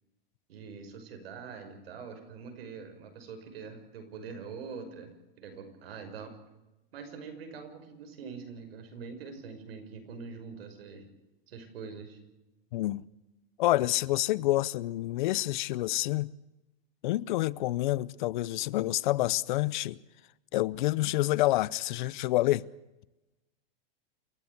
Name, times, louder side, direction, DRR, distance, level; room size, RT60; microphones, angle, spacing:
voice 1, 0.5-6.4 6.9-11.0 11.5-12.2, right 5 dB, 80° right, 5.9 m, -44 dB
voice 2, 13.6-16.3 17.0-20.0 20.5-22.7, left 17 dB, 55° left, 0.7 m, -28 dB
28.5 x 13.0 x 8.2 m
supercardioid pair, 160°, 29 cm